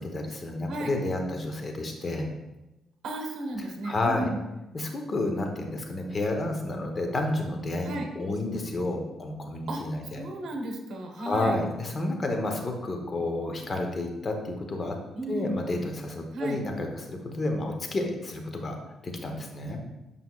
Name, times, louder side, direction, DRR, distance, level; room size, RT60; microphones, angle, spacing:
voice 1, 0.0-2.3 3.8-4.3 4.7-10.3 11.2-15.0 15.3-18.8 19.2-19.8, left 2 dB, 35° left, 3 dB, 1.1 m, -30 dB
voice 2, 3.0-4.4 7.8-8.1 9.7-9.8 10.1-11.5 15.1-15.5 16.3-16.6, right 1 dB, 65° right, 3 dB, 1.2 m, -34 dB
8.2 x 5.4 x 2.4 m, 0.98 s
cardioid pair, 90°, 0 cm